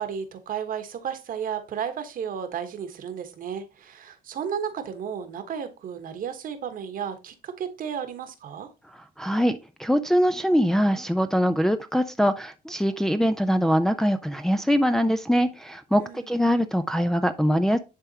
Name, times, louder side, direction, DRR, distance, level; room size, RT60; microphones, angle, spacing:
voice 1, 0.0-8.7 16.0-16.3, right 8 dB, 55° right, 1.2 m, -33 dB
voice 2, 9.2-17.8, equal, 5° left, 0.5 m, -23 dB
10.0 x 3.5 x 2.8 m
cardioid pair, 110°, 17 cm